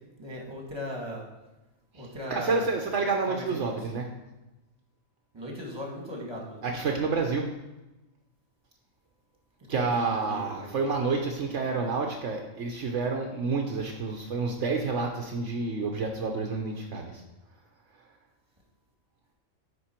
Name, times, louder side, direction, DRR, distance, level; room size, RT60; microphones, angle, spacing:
voice 1, 0.2-1.3 1.9-2.8 3.3-4.0 5.3-7.0 9.7-10.7, equal, 20° right, -1 dB, 1.7 m, -38 dB
voice 2, 1.9-4.1 6.6-7.5 9.7-17.2, right 4 dB, 65° right, 2 dB, 1.0 m, -29 dB
9.8 x 4.3 x 4.4 m, 1.0 s
omnidirectional pair, 1.4 m